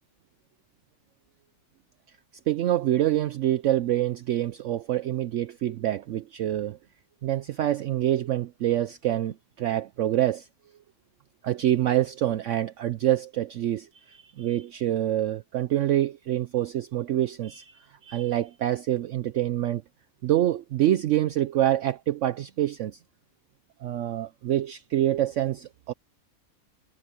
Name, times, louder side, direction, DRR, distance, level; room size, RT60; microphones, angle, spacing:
voice 1, 2.5-6.8 7.2-10.5 11.4-19.8 20.2-23.0 23.8-25.9, right 13 dB, 65° right, 0.9 m, -26 dB
omnidirectional pair, 1.5 m